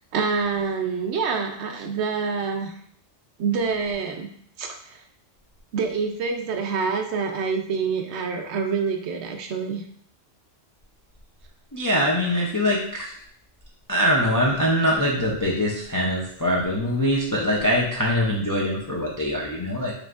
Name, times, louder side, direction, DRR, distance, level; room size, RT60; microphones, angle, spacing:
voice 1, 0.1-2.7 3.4-4.3 4.6-5.0 5.7-9.8, right 5 dB, 65° right, 4 dB, 0.8 m, -26 dB
voice 2, 11.7-13.1 13.9-19.9, equal, 35° left, -3 dB, 0.3 m, -23 dB
4.9 x 3.2 x 2.4 m, 0.63 s
omnidirectional pair, 1.3 m